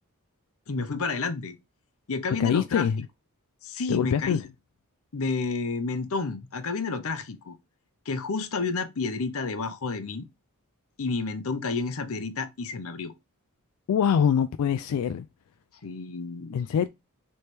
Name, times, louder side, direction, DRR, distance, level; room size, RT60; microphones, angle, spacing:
voice 1, 0.7-1.5 2.1-2.9 3.6-4.5 5.1-7.6 8.1-10.2 11.0-13.1 15.8-16.6, left 4 dB, 65° left, 0.7 m, -30 dB
voice 2, 2.4-3.1 3.9-4.4 13.9-15.3 16.5-16.9, left 8 dB, 90° left, 0.3 m, -24 dB
3.3 x 3.1 x 4.3 m
head